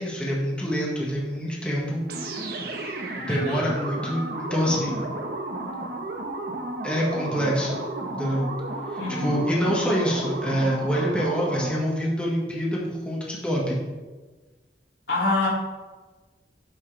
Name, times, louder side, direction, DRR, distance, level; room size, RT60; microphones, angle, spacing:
voice 1, 0.0-2.0 3.2-5.1 6.8-7.8 8.1-8.5 8.9-13.8, equal, 5° left, -5 dB, 1.6 m, -26 dB
sound 1, 2.1-11.9, right 2 dB, 55° right, 1.2 m, -33 dB
voice 2, 3.2-3.7 9.0-9.4 15.1-15.5, left 2 dB, 80° left, -4 dB, 2.7 m, -26 dB
9.6 x 7.5 x 3.4 m, 1.3 s
head